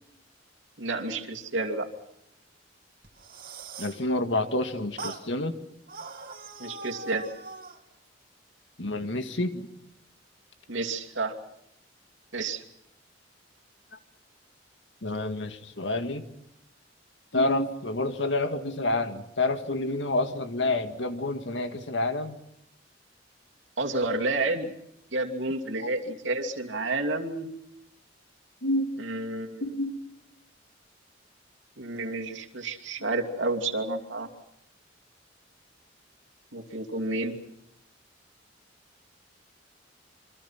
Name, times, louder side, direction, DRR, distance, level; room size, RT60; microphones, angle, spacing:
voice 1, 0.8-1.9 6.6-7.3 10.7-11.4 12.3-12.6 23.8-24.7 25.1-27.5 29.0-29.7 31.8-34.3 36.5-37.4, right 2 dB, 85° right, 2 dB, 2.7 m, -30 dB
sound 1, 3.0-4.0 5.0-5.3 5.9-7.8, right 4 dB, 50° right, 2.3 m, -41 dB
voice 2, 3.8-5.6 8.8-9.7 15.0-16.3 17.3-22.4 28.6-28.9 29.6-30.0, left 2 dB, 70° left, 8 dB, 2.0 m, -28 dB
27.0 x 25.0 x 5.8 m, 0.78 s
head